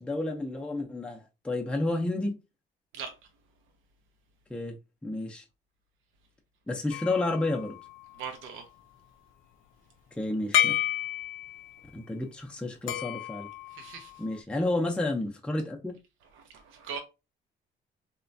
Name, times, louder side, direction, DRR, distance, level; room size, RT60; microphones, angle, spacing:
voice 1, 0.0-2.4 4.5-4.8 5.0-5.4 6.7-7.8 10.2-10.7 11.9-13.5 14.2-16.0, left 2 dB, 5° left, 0.5 m, -31 dB
sound 1, 6.9-8.6 10.5-11.8 12.9-14.4, left 12 dB, 80° left, 0.4 m, -31 dB
voice 2, 8.2-8.6 13.8-14.1 16.7-17.0, right 7 dB, 85° right, 0.5 m, -38 dB
3.0 x 2.2 x 2.5 m
cardioid pair, 90°, 20 cm